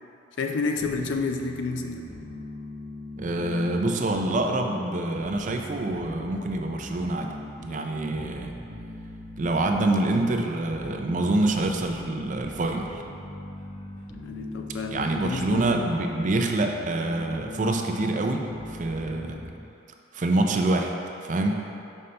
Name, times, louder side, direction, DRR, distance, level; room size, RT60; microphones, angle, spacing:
voice 1, 0.4-2.1 14.2-15.8, left 3 dB, 70° left, 4 dB, 0.5 m, -30 dB
sound 1, 0.7-19.5, left 1 dB, 15° left, 1.4 m, -40 dB
voice 2, 3.2-7.3 7.6-8.5 9.4-13.0 14.9-19.4 20.1-20.9 21.2-21.6, right 2 dB, 40° right, 3 dB, 0.4 m, -26 dB
5.5 x 5.4 x 3.3 m, 2.8 s
head